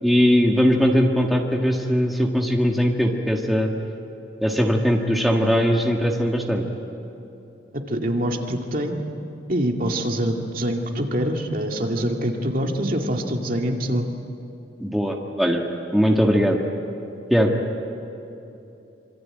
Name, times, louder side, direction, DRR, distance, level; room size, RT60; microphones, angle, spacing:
voice 1, 0.0-3.7 4.4-6.6 14.8-15.6 15.9-16.6 17.3-17.5, equal, ahead, 0 dB, 1.7 m, -20 dB
voice 2, 7.7-9.0 9.5-14.0, right 1 dB, 45° right, 2 dB, 2.3 m, -25 dB
26.0 x 25.0 x 9.1 m, 2.9 s
head